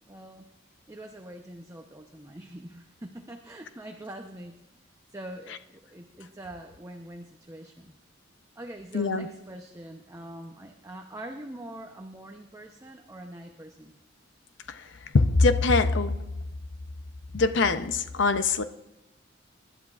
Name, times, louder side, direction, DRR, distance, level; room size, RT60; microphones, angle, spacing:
voice 1, 0.1-0.5 0.9-4.6 5.1-8.0 8.6-14.0, right 1 dB, 15° right, 3 dB, 0.8 m, -43 dB
voice 2, 8.9-9.3 14.7-14.8 15.1-16.2 17.3-18.6, left 3 dB, 65° left, 10 dB, 0.7 m, -23 dB
24.0 x 11.5 x 2.5 m, 0.97 s
head